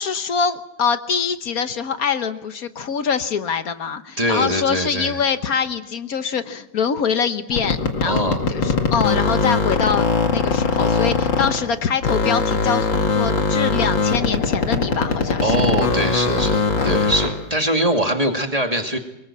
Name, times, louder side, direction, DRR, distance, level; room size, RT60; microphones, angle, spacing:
voice 1, 0.0-10.1 10.3-15.6, left 6 dB, 55° left, 10 dB, 1.4 m, -24 dB
voice 2, 4.2-5.2 8.0-8.5 15.4-19.0, right 1 dB, 20° right, 3 dB, 2.4 m, -22 dB
sound 1, 7.5-11.7 12.0-17.4, left 4 dB, 80° left, 2.9 m, -20 dB
24.5 x 21.5 x 7.4 m, 0.87 s
omnidirectional pair, 2.0 m